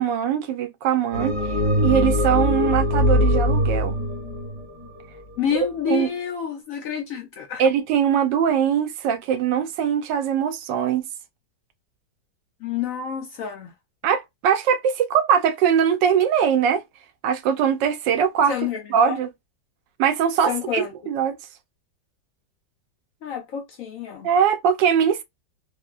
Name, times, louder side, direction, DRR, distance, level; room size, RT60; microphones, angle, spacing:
voice 1, 0.0-1.4 1.8-4.0 5.9-6.1 7.6-11.0 14.0-16.8 17.2-18.5 18.9-19.3 20.0-21.4 24.2-25.2, right 8 dB, 85° right, 1.3 m, -21 dB
sound 1, 1.1-5.5, left 1 dB, 25° right, 0.8 m, -22 dB
voice 2, 5.4-7.7 12.6-13.7 18.5-19.2 20.4-20.9 23.2-24.3, left 8 dB, 70° left, 0.8 m, -28 dB
3.6 x 2.0 x 2.3 m
omnidirectional pair, 1.9 m